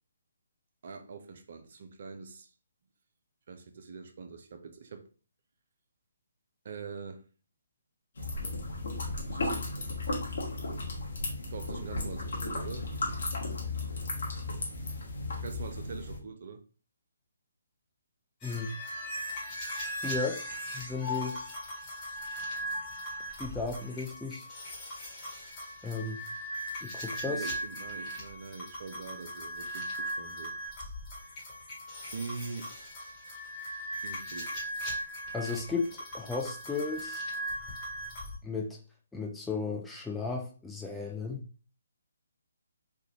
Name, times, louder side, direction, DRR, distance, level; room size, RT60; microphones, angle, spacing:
voice 1, 0.8-2.5 3.5-5.1 6.6-7.2 9.3-9.7 11.5-12.9 15.4-16.6 27.2-30.5 30.8-31.6 32.1-32.7 34.0-34.7, right 5 dB, 50° right, 0.5 m, -43 dB
sound 1, 8.2-16.2, left 2 dB, 60° left, 1.1 m, -35 dB
sound 2, 18.4-38.4, equal, 25° left, 1.2 m, -39 dB
voice 2, 20.0-20.4 20.7-21.4 23.4-24.5 25.8-26.2 26.8-27.5 35.3-37.2 38.4-38.8 39.1-41.5, left 4 dB, 5° left, 0.4 m, -35 dB
3.4 x 2.3 x 2.8 m
figure-of-eight pair, 145°, 0 cm